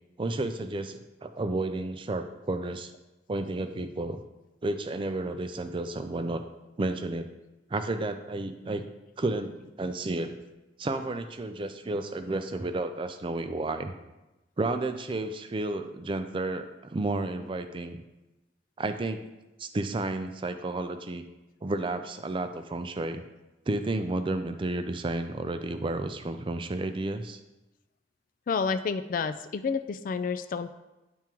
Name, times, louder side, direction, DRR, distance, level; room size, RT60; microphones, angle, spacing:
voice 1, 0.2-2.9 3.3-4.2 4.6-6.4 6.8-7.3 7.7-8.8 9.2-10.4 10.8-13.9 14.6-18.0 18.8-19.3 19.6-21.2 21.6-23.2 23.7-27.4, right 2 dB, 30° right, 8 dB, 0.4 m, -32 dB
voice 2, 28.5-30.7, left 5 dB, 45° left, 11 dB, 0.3 m, -29 dB
10.5 x 3.6 x 3.0 m, 1.0 s
head